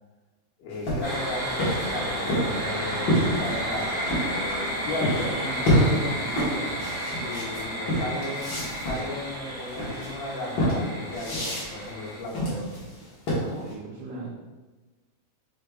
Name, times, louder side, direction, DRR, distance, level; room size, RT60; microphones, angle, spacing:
voice 1, 0.6-5.7 7.2-8.4 8.8-12.7 13.3-13.4, left 2 dB, 85° left, -3 dB, 2.8 m, -35 dB
sound 1, 0.7-4.3 5.0-5.3 5.6-13.7, equal, 70° left, 1.1 m, -27 dB
sound 2, 1.0-12.2, equal, 50° right, 1.8 m, -32 dB
voice 2, 5.3-6.8 13.4-14.3, right 2 dB, 85° right, -6 dB, 1.9 m, -35 dB
6.3 x 3.5 x 2.3 m, 1.2 s
omnidirectional pair, 4.4 m